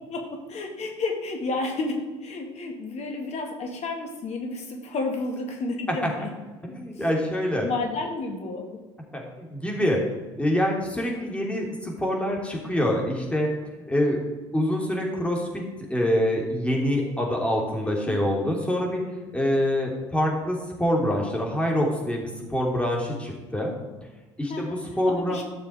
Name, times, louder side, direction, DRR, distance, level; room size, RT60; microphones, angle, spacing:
voice 1, 0.1-6.3 6.9-7.0 7.6-8.6 17.8-18.2 24.5-24.8 25.1-25.4, left 3 dB, 45° left, 3 dB, 2.5 m, -31 dB
voice 2, 6.6-7.7 9.1-10.0 10.4-13.5 13.9-14.2 14.5-15.6 15.9-19.0 19.3-23.7 24.4-25.4, equal, 10° left, -1 dB, 3.4 m, -25 dB
13.5 x 6.8 x 4.8 m, 1.2 s
hypercardioid pair, 60°, 15 cm